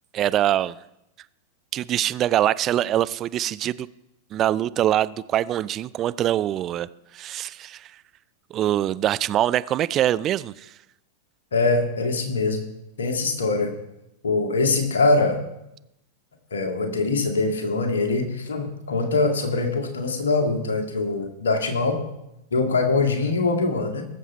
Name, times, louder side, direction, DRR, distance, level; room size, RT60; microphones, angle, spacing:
voice 1, 0.1-0.8 1.7-3.9 4.3-6.9 7.1-7.9 8.5-10.7, right 12 dB, 35° right, 17 dB, 0.4 m, -23 dB
voice 2, 11.5-12.7 13.0-13.7 14.2-15.4 16.5-22.0 22.5-24.0, left 3 dB, 75° left, 3 dB, 2.0 m, -23 dB
20.0 x 7.4 x 4.2 m, 0.87 s
figure-of-eight pair, 95°, 0 cm